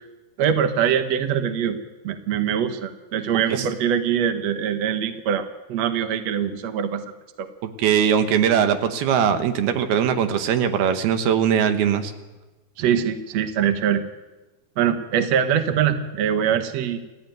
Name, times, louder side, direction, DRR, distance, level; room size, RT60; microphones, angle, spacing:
voice 1, 0.4-1.8 2.0-7.0 7.4-7.5 12.8-14.0 14.8-17.0, right 8 dB, 55° right, 8 dB, 2.3 m, -23 dB
voice 2, 7.8-12.1, right 8 dB, 85° right, 8 dB, 3.3 m, -20 dB
29.0 x 14.5 x 9.4 m, 1.2 s
omnidirectional pair, 4.3 m